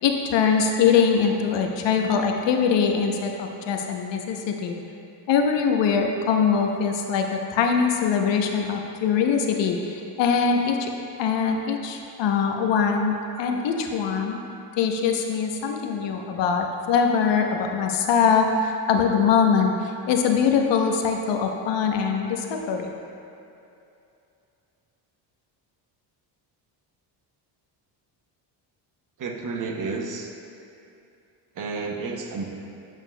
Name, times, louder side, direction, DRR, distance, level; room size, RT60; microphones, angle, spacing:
voice 1, 0.0-4.8 5.3-10.9 11.2-14.4 14.8-22.9, left 6 dB, 65° left, 3 dB, 0.8 m, -22 dB
voice 2, 29.2-30.3 31.6-32.4, right 4 dB, 45° right, 2 dB, 0.8 m, -31 dB
8.0 x 7.3 x 2.2 m, 2.7 s
cardioid pair, 100°, 46 cm